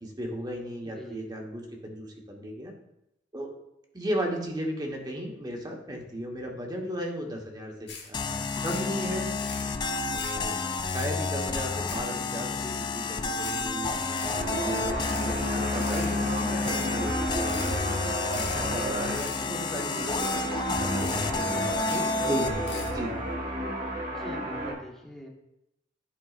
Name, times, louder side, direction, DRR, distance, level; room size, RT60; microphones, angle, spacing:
voice 1, 0.0-2.7 3.3-3.5 3.9-9.3 10.1-10.5 10.9-13.9 14.2-23.1, equal, 25° right, 1 dB, 1.1 m, -35 dB
voice 2, 0.8-1.2 24.1-25.3, equal, 5° left, -2 dB, 1.1 m, -43 dB
sound 1, 7.9-8.1 8.4-8.9 9.3-9.7 10.0-10.4 10.8-11.2 11.5-12.4 12.7-12.8 13.3-13.7 14.0-14.4 14.8-15.3 15.7-16.1 16.6-16.9 17.4-17.8 18.2-18.6 19.0-19.4 19.7-19.9 20.2-20.5 20.8-21.4 21.7-22.1 22.5-22.9, left 5 dB, 65° left, 1.2 m, -42 dB
sound 2, 8.1-23.0, left 3 dB, 25° left, 0.3 m, -30 dB
sound 3, 13.6-24.7, right 1 dB, 45° right, 1.2 m, -33 dB
10.5 x 4.5 x 2.4 m, 0.86 s
head